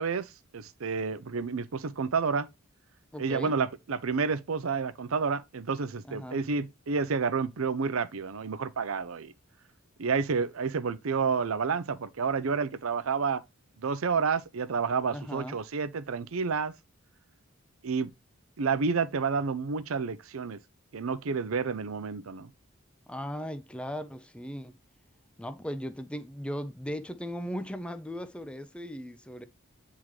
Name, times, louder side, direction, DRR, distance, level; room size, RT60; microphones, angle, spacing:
voice 1, 0.0-2.5 3.2-9.3 10.0-13.4 13.8-16.7 17.8-18.1 18.6-20.6 20.9-22.5, right 5 dB, 80° right, 0.6 m, -30 dB
voice 2, 3.1-3.5 6.1-6.4 15.1-15.6 23.1-24.7 25.4-29.5, equal, 5° left, 0.4 m, -37 dB
8.9 x 3.7 x 3.2 m
head